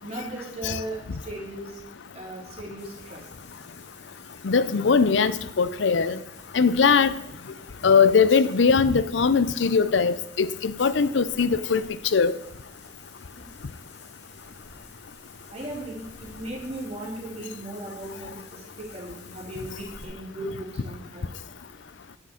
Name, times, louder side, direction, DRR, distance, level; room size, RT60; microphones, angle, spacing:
voice 1, 0.0-1.8 2.1-3.3 15.5-21.3, right 1 dB, 35° right, -2 dB, 3.5 m, -37 dB
sound 1, 2.8-20.1, left 4 dB, 65° left, 2.1 m, -50 dB
voice 2, 4.4-6.2 6.5-7.1 7.8-11.8 12.1-12.3, left 5 dB, 85° left, 16 dB, 0.6 m, -20 dB
9.9 x 6.2 x 8.6 m, 0.82 s
head